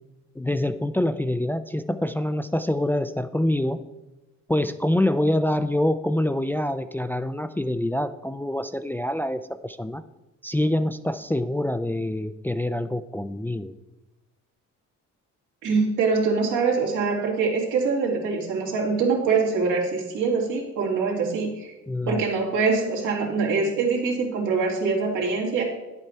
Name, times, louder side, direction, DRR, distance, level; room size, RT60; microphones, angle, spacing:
voice 1, 0.4-3.8 4.5-10.0 10.4-13.7 21.9-22.2, left 1 dB, 5° left, 10 dB, 0.4 m, -25 dB
voice 2, 15.6-21.7 22.1-25.6, right 4 dB, 90° right, -1 dB, 2.7 m, -24 dB
10.0 x 8.0 x 4.4 m, 1.0 s
cardioid pair, 90°, 30 cm